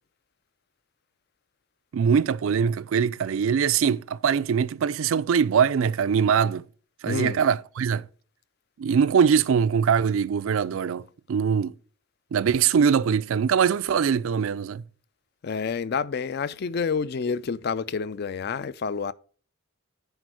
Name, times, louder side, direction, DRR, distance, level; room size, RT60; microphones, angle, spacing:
voice 1, 1.9-6.6 7.0-8.1 8.8-11.7 12.3-14.8, right 7 dB, 70° right, 0.4 m, -22 dB
voice 2, 7.1-7.4 15.4-19.1, left 5 dB, 45° left, 0.4 m, -28 dB
10.0 x 4.4 x 4.7 m
head